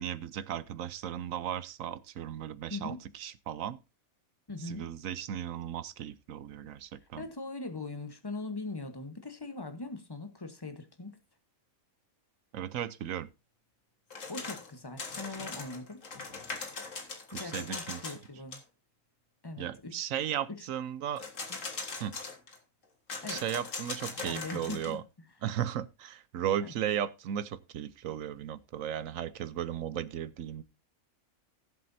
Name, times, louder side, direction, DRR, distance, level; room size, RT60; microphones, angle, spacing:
voice 1, 0.0-3.8 4.6-7.2 12.5-13.3 17.3-18.1 19.6-21.3 22.0-22.2 23.3-25.0 25.4-30.6, right 10 dB, 70° right, 1.1 m, -36 dB
voice 2, 2.7-3.0 4.5-4.9 7.2-11.2 14.3-16.0 17.3-18.6 19.4-20.0 20.5-20.7 21.5-21.6 23.2-23.4 24.2-25.0 26.6-26.7, left 3 dB, 20° left, 1.1 m, -41 dB
sound 1, 14.1-14.7 15.0-18.3 18.5-18.6 21.2-22.6 23.1-25.0, left 4 dB, 60° left, 2.0 m, -40 dB
18.5 x 7.6 x 2.7 m
omnidirectional pair, 1.5 m